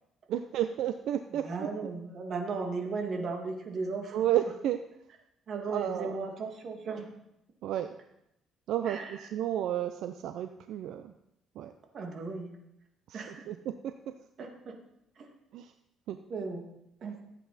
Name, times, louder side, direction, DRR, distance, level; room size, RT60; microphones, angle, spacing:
voice 1, 0.3-1.7 4.1-4.8 5.7-6.2 7.6-7.9 8.7-9.0 9.3-11.1 11.6-11.7 13.1-14.1 15.5-15.7 16.1-16.2, right 11 dB, 75° right, 9 dB, 0.5 m, -32 dB
voice 2, 1.3-4.3 5.5-7.1 8.8-9.3 11.9-12.6 13.1-13.5 14.4-14.8 15.2-15.3 16.3-16.6 17.0-17.2, right 4 dB, 45° right, 3 dB, 2.1 m, -36 dB
14.5 x 8.4 x 4.2 m, 0.83 s
cardioid pair, 140°, 0 cm